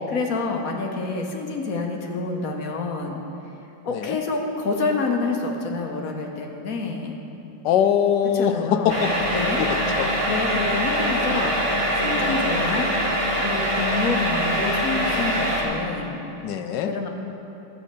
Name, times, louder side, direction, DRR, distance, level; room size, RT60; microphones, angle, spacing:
voice 1, 0.1-3.2 3.8-7.2 8.3-9.6 10.3-11.6 12.0-12.9 13.4-16.2 16.8-17.1, left 3 dB, 50° left, 1 dB, 1.3 m, -27 dB
voice 2, 3.9-4.2 7.6-9.1 9.4-9.7 10.0-10.1 12.1-12.5 16.4-16.9, left 9 dB, 70° left, 8 dB, 1.1 m, -23 dB
sound 1, 8.9-15.6, equal, 15° right, 1.4 m, -23 dB
12.0 x 5.6 x 8.2 m, 2.9 s
omnidirectional pair, 2.1 m